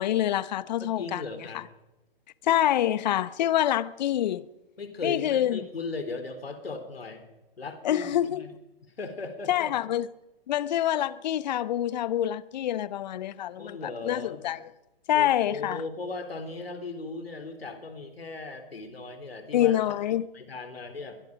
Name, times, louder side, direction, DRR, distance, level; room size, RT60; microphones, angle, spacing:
voice 1, 0.0-1.2 2.4-4.5 5.0-5.6 7.8-8.5 9.5-10.1 10.5-14.6 15.1-15.8 19.5-20.3, left 12 dB, 45° left, 0.8 m, -26 dB
voice 2, 0.8-1.6 4.8-7.3 7.6-8.5 9.0-9.8 13.6-14.4 15.1-19.8 20.3-21.2, left 3 dB, 80° left, 3.8 m, -37 dB
22.5 x 22.5 x 5.1 m
figure-of-eight pair, 125°, 30 cm